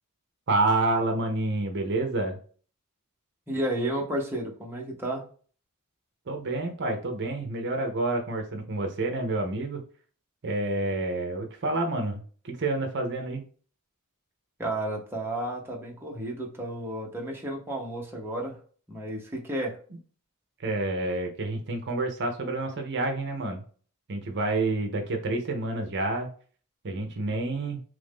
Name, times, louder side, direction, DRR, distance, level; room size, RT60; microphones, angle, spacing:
voice 1, 0.5-2.4 6.3-9.8 10.4-13.4 20.6-23.6 24.1-26.3 26.8-27.8, right 2 dB, 55° right, 3 dB, 0.7 m, -28 dB
voice 2, 3.5-5.2 14.6-18.6 18.9-19.8, right 1 dB, 10° right, -2 dB, 0.8 m, -32 dB
3.1 x 2.6 x 3.5 m, 0.43 s
head